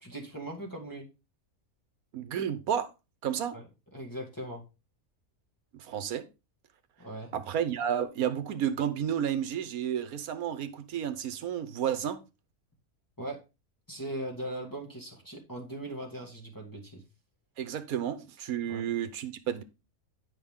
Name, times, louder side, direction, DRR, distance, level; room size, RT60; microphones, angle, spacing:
voice 1, 0.0-1.1 3.5-3.6 3.9-4.6 7.0-7.3 13.2-13.4 13.9-17.0 18.6-18.9, right 1 dB, 15° left, 1.7 m, -39 dB
voice 2, 2.1-2.9 3.2-3.6 5.7-6.2 7.3-12.2 17.6-19.6, right 9 dB, 85° right, 1.3 m, -31 dB
9.9 x 5.5 x 3.6 m
omnidirectional pair, 1.5 m